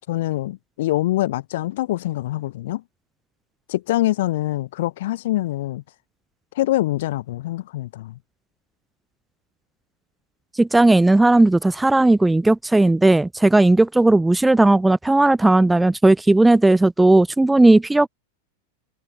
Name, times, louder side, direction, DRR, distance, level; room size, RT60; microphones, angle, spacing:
voice 1, 0.1-2.8 3.7-5.8 6.5-8.2, left 16 dB, 55° left, 1.3 m, -24 dB
voice 2, 10.6-18.1, right 2 dB, 5° right, 0.3 m, -15 dB
figure-of-eight pair, 90°, 0 cm